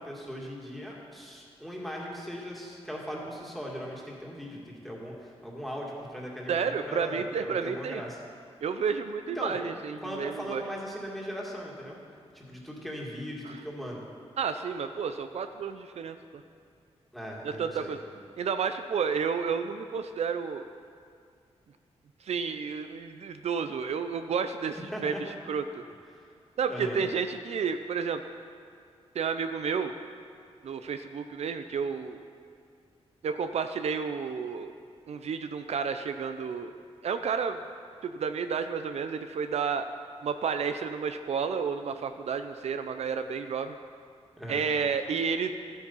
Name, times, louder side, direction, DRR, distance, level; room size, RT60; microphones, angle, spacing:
voice 1, 0.0-8.2 9.3-9.6 10.0-12.0 12.3-14.0 17.1-17.9 24.9-25.2 26.1-26.2 26.7-27.0 44.4-44.6, equal, ahead, -3 dB, 2.2 m, -39 dB
voice 2, 6.5-8.0 8.6-10.6 14.4-16.2 17.4-18.0 18.4-20.7 22.2-25.1 25.5-25.8 26.6-28.2 29.1-29.9 30.6-32.2 33.2-34.7 35.1-36.7 37.0-37.6 38.0-39.8 40.2-43.7 44.5-45.5, right 6 dB, 70° right, 8 dB, 0.5 m, -31 dB
13.5 x 8.2 x 5.6 m, 2.3 s
wide cardioid pair, 125°, 11 cm